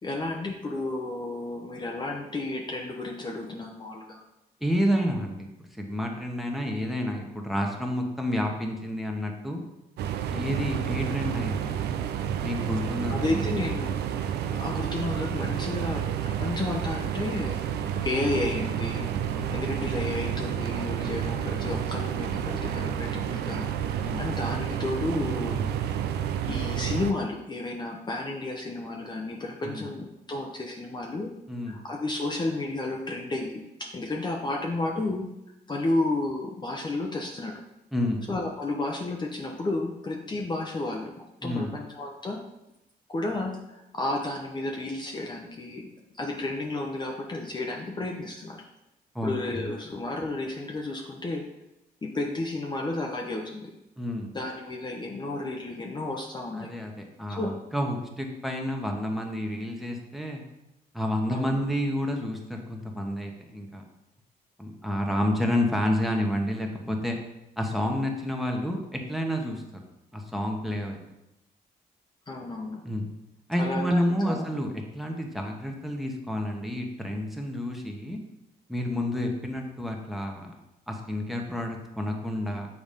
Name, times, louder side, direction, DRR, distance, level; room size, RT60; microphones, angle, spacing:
voice 1, 0.0-4.2 13.1-14.0 14.4-17.6 18.0-19.1 19.5-23.7 24.2-25.7 26.4-31.3 31.7-35.3 35.7-37.6 38.3-42.4 43.1-45.9 46.2-48.6 49.2-51.4 52.0-53.7 54.3-56.7 57.3-57.5 61.3-61.6 72.3-72.8 73.6-74.5, left 2 dB, 25° left, 1 dB, 0.8 m, -32 dB
voice 2, 4.6-5.5 5.8-9.6 10.3-11.8 12.4-13.4 19.3-19.8 24.0-24.3 29.6-29.9 31.5-31.8 37.9-38.2 41.4-41.7 49.1-49.7 54.0-54.3 56.5-60.4 60.9-63.8 64.6-67.2 67.6-69.6 70.1-71.0 72.8-73.1 73.5-74.7 74.9-78.2 78.7-80.5 80.9-82.7, left 1 dB, ahead, 1 dB, 1.2 m, -29 dB
sound 1, 10.0-27.1, right 9 dB, 85° right, 0.5 m, -30 dB
7.2 x 4.0 x 5.2 m, 0.91 s
cardioid pair, 100°, 17 cm